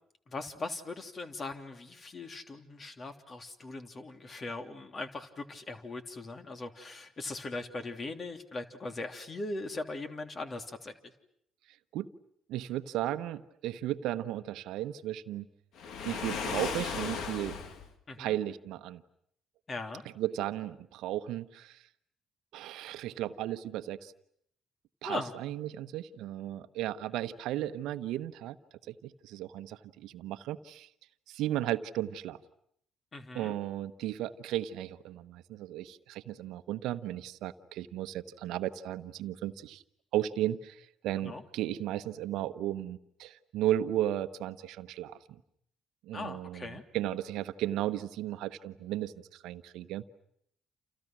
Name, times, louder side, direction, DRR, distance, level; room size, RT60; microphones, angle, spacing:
voice 1, 0.3-11.1 18.1-18.4 19.7-20.0 25.0-25.3 33.1-33.5 41.2-41.4 46.1-46.8, left 2 dB, 40° left, 6 dB, 3.2 m, -40 dB
voice 2, 12.5-15.5 16.0-17.6 18.2-19.0 20.2-21.8 22.5-24.1 25.0-28.6 28.9-30.9 31.3-32.4 33.3-39.8 40.1-45.2 46.0-50.0, right 13 dB, 70° right, 11 dB, 1.0 m, -35 dB
Waves surf, 15.8-17.9, left 6 dB, 65° left, 2.3 m, -36 dB
29.5 x 29.0 x 6.2 m, 0.71 s
hypercardioid pair, 50°, 0 cm